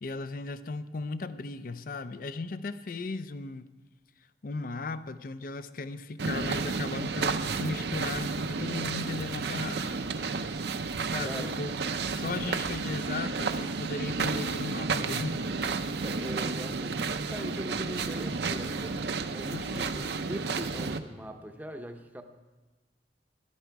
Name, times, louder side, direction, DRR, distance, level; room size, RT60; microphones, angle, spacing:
voice 1, 0.0-3.6 4.4-10.0 11.1-11.7 12.1-15.4 19.5-19.9, left 3 dB, 50° left, 13 dB, 0.5 m, -36 dB
sound 1, 6.2-21.0, right 4 dB, 65° right, 0.6 m, -32 dB
voice 2, 11.2-11.6 16.0-22.2, equal, 10° right, 5 dB, 0.7 m, -41 dB
13.0 x 11.5 x 4.6 m, 1.2 s
head